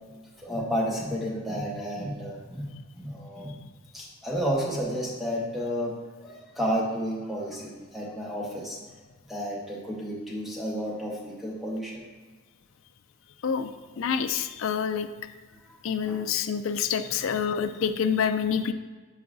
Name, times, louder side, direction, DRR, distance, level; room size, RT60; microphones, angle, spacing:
voice 1, 0.4-2.7 2.9-3.6 3.9-8.8 9.2-12.0 13.9-14.1 16.0-16.2 17.2-17.4, equal, ahead, -4 dB, 1.1 m, -31 dB
voice 2, 14.0-15.1 15.8-18.7, left 7 dB, 70° left, 10 dB, 0.4 m, -27 dB
9.5 x 4.8 x 2.6 m, 1.4 s
head